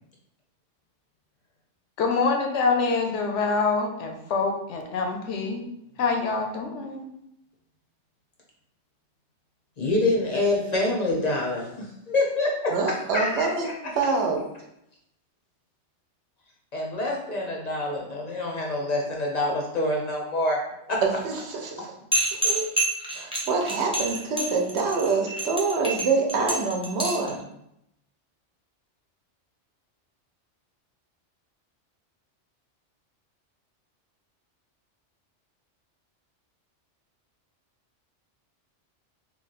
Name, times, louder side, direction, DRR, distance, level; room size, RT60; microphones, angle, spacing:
voice 1, 2.0-5.6 6.0-7.1, left 4 dB, 80° left, 3 dB, 0.9 m, -25 dB
voice 2, 9.8-12.7 13.1-13.7 16.7-20.6 20.9-21.0, left 2 dB, 45° left, -2 dB, 0.6 m, -26 dB
voice 3, 12.7-13.7 13.9-14.4 21.0-21.9 22.3-22.7 23.1-27.4, right 4 dB, 70° right, 1 dB, 0.9 m, -26 dB
sound 1, 22.1-27.3, right 1 dB, 10° right, 0.4 m, -27 dB
3.0 x 2.3 x 4.0 m, 0.80 s
omnidirectional pair, 1.2 m